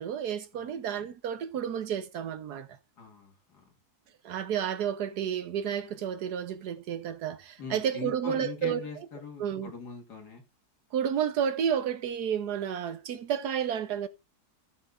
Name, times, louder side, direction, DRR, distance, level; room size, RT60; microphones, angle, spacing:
voice 1, 0.0-2.7 4.2-8.9 9.4-9.7 10.9-14.1, right 8 dB, 80° right, 1.5 m, -31 dB
voice 2, 3.0-3.6 7.6-10.4, left 6 dB, 85° left, 2.6 m, -41 dB
15.0 x 6.9 x 2.5 m
omnidirectional pair, 1.7 m